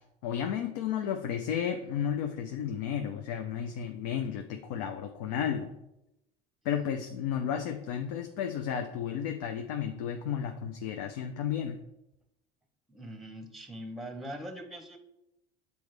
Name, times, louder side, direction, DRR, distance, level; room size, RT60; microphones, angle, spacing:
voice 1, 0.2-5.7 6.6-11.8, left 8 dB, 80° left, 5 dB, 0.5 m, -33 dB
voice 2, 12.9-15.0, equal, ahead, 6 dB, 0.8 m, -42 dB
7.8 x 4.1 x 3.3 m, 0.88 s
supercardioid pair, 110°, 20 cm